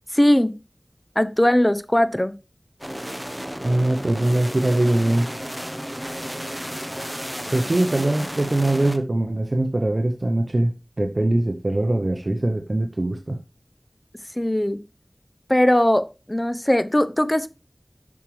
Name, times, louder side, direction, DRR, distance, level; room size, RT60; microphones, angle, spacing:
voice 1, 0.2-0.5 1.2-2.3 14.4-14.8 15.5-17.5, left 1 dB, 20° left, 13 dB, 0.6 m, -19 dB
sound 1, 2.8-9.0, equal, 10° right, 0.8 m, -33 dB
voice 2, 3.6-5.3 7.5-13.4, right 1 dB, 60° right, 5 dB, 0.7 m, -22 dB
7.1 x 6.1 x 3.1 m, 0.29 s
wide cardioid pair, 45°, 0 cm